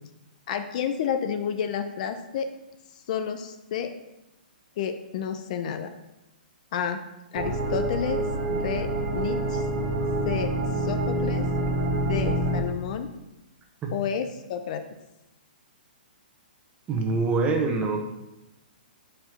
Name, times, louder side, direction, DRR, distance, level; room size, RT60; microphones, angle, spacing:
voice 1, 0.5-2.5 3.1-3.9 4.8-5.9 6.7-7.0 7.3-9.6 10.2-10.5 10.8-11.5 12.1-13.1 13.9-14.8, left 8 dB, 50° left, 8 dB, 0.6 m, -30 dB
sound 1, 7.3-12.6, right 1 dB, 50° right, 1.7 m, -27 dB
voice 2, 16.9-18.0, right 3 dB, 20° right, 2 dB, 1.2 m, -24 dB
4.9 x 4.5 x 5.9 m, 0.95 s
hypercardioid pair, 125°, 5 cm